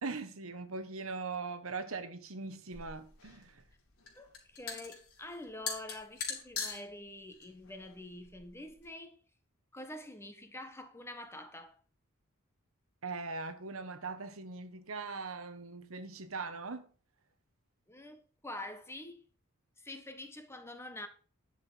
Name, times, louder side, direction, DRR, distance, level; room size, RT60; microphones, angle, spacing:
voice 1, 0.0-3.6 13.0-16.9, right 4 dB, 70° right, 1.2 m, -40 dB
sound 1, 2.7-8.9, left 6 dB, 85° left, 3.9 m, -43 dB
voice 2, 4.2-9.2 9.7-11.8 17.9-19.3 19.8-21.1, left 1 dB, 10° left, 1.4 m, -46 dB
10.5 x 6.9 x 5.6 m
head